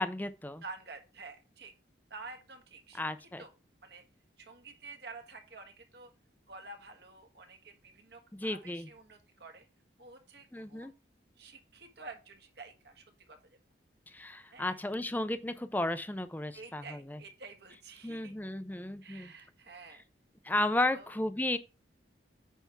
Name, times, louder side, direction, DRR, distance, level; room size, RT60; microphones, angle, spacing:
voice 1, 0.0-0.6 3.0-3.4 8.3-8.9 10.5-10.9 14.1-17.2 18.0-19.3 20.4-21.6, left 1 dB, 10° left, 0.5 m, -34 dB
voice 2, 0.6-1.7 2.1-3.5 3.8-4.0 4.4-6.1 6.5-9.7 10.0-10.9 11.4-13.6 14.5-14.8 16.5-18.3 19.0-20.0 20.7-21.1, right 3 dB, 60° right, 1.5 m, -50 dB
9.1 x 3.5 x 5.8 m
head